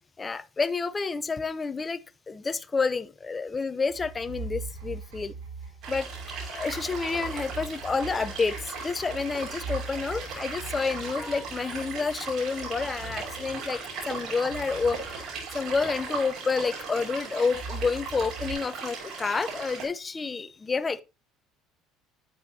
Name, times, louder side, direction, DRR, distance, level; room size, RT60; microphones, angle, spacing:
voice 1, 0.2-2.0 2.3-5.3 5.9-6.1 6.4-15.0 15.5-21.0, left 4 dB, 25° left, 0.8 m, -29 dB
sound 1, 3.9-14.1 14.5-16.3 17.5-18.5, right 3 dB, 85° right, 5.2 m, -41 dB
sound 2, 5.8-19.8, right 4 dB, 60° right, 5.4 m, -38 dB
10.5 x 7.8 x 2.8 m
supercardioid pair, 80°, 0 cm